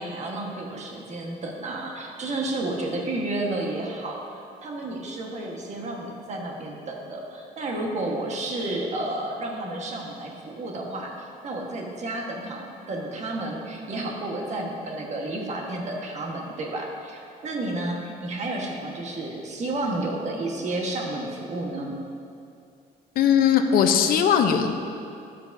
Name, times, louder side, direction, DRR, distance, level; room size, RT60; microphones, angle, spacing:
voice 1, 0.0-22.0, right 2 dB, 45° right, 0 dB, 1.3 m, -31 dB
voice 2, 23.2-24.7, left 8 dB, 60° left, 6 dB, 0.7 m, -19 dB
12.0 x 7.7 x 2.7 m, 2.5 s
cardioid pair, 110°, 17 cm